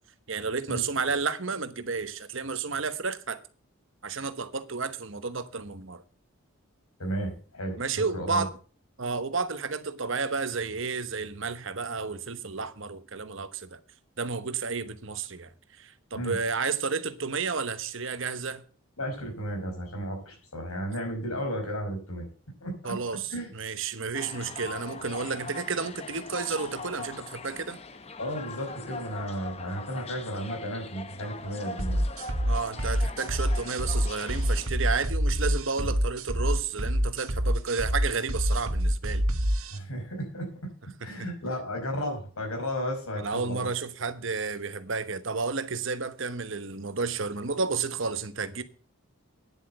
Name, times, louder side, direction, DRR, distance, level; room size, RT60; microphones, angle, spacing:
voice 1, 0.3-3.4 4.0-6.0 7.8-8.5 9.0-13.8 14.2-15.5 15.8-18.6 22.8-27.8 32.5-39.2 43.2-48.6, right 4 dB, 65° right, 1.1 m, -31 dB
voice 2, 7.0-8.4 16.1-16.4 19.0-22.3 22.6-23.0 23.3-23.5 28.2-32.0 35.8-35.9 39.7-40.7 41.0-43.7, equal, 85° left, 5.3 m, -34 dB
sound 1, 24.1-34.7, left 3 dB, 30° left, 0.9 m, -41 dB
sound 2, 31.8-39.8, equal, 85° right, 1.5 m, -27 dB
10.0 x 7.9 x 7.8 m
head